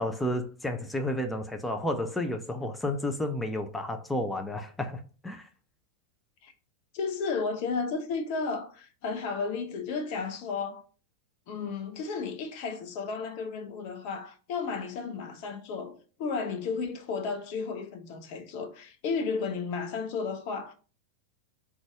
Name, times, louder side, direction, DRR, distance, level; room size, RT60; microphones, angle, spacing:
voice 1, 0.0-5.4, left 1 dB, 5° left, 0.5 m, -31 dB
voice 2, 6.9-10.8 11.5-20.7, left 5 dB, 45° left, 0.6 m, -33 dB
3.9 x 2.4 x 4.4 m
figure-of-eight pair, 90°, 0 cm